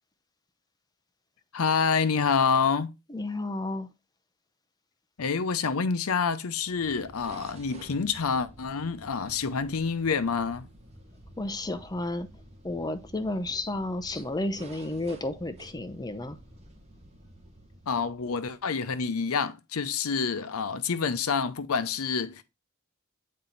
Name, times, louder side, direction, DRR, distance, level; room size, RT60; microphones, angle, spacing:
voice 1, 1.5-2.9 5.2-10.7 17.9-22.4, left 5 dB, 85° left, 0.6 m, -27 dB
voice 2, 3.1-3.9 11.4-12.3 12.6-16.4, left 2 dB, 20° left, 0.6 m, -32 dB
sound 1, 6.6-18.8, right 1 dB, 30° right, 1.4 m, -51 dB
7.5 x 4.3 x 3.9 m
head